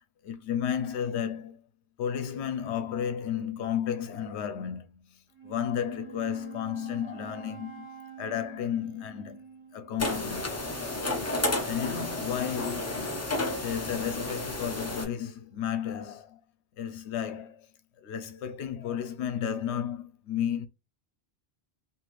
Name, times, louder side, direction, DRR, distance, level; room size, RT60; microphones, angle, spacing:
voice 1, 0.2-1.6 2.0-5.0 5.4-7.9 8.2-9.4 9.7-10.7 11.7-13.1 13.4-16.4 16.8-17.7 18.0-20.7, left 9 dB, 90° left, 0.9 m, -33 dB
Wind instrument woodwind instrument, 5.3-10.2, right 7 dB, 10° right, 1.2 m, -47 dB
sound 1, 10.0-15.1, left 2 dB, 25° left, 0.4 m, -31 dB
3.0 x 2.8 x 2.4 m
omnidirectional pair, 1.1 m